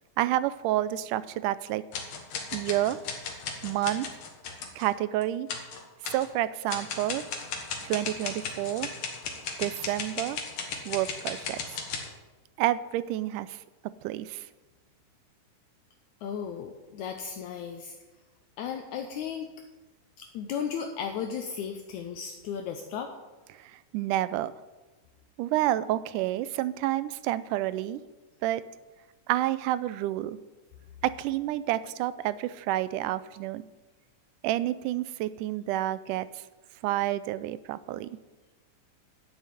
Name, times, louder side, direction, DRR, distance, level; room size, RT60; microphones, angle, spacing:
voice 1, 0.2-1.8 2.5-3.0 3.6-4.1 4.8-5.5 6.1-7.2 7.8-8.9 9.6-10.4 10.9-11.6 12.6-14.5 23.6-24.5 25.4-28.0 28.4-28.6 29.3-30.4 31.0-33.6 34.4-36.3 36.8-38.2, right 14 dB, 85° right, 16 dB, 2.1 m, -29 dB
sound 1, 1.9-4.9 5.2-5.3 5.5-6.3 6.7-12.1, left 5 dB, 60° left, 2.5 m, -36 dB
voice 2, 16.2-17.9 18.6-19.5 20.2-23.1, left 7 dB, 75° left, 4 dB, 2.1 m, -35 dB
11.0 x 6.5 x 9.1 m, 1.2 s
omnidirectional pair, 3.6 m